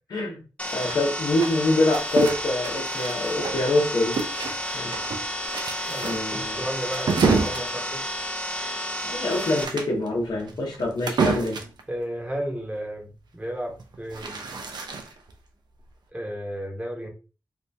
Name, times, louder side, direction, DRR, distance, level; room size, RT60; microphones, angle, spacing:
voice 1, 0.1-0.4 0.7-4.2 4.7-4.9 6.0-6.6 9.1-11.6, left 2 dB, 75° left, 0 dB, 0.8 m, -25 dB
sound 1, 0.6-9.6, equal, 15° left, 0.6 m, -31 dB
sound 2, 0.7-3.8 4.1-11.8 13.7-15.3, right 4 dB, 80° right, 0.6 m, -29 dB
voice 2, 5.9-8.1 11.9-14.4 16.1-17.1, equal, 20° right, 0 dB, 1.1 m, -33 dB
2.8 x 2.6 x 3.3 m, 0.33 s
cardioid pair, 70°, 7 cm